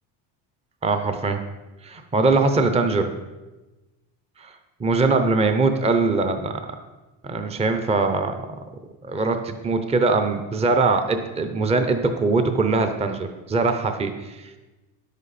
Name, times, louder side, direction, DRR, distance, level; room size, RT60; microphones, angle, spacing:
voice 1, 0.8-1.4 1.8-3.1 4.4-4.5 4.8-6.5 7.2-8.3 9.0-14.6, right 3 dB, 15° right, 7 dB, 0.7 m, -22 dB
10.5 x 8.3 x 4.2 m, 1.1 s
cardioid pair, 125°, 41 cm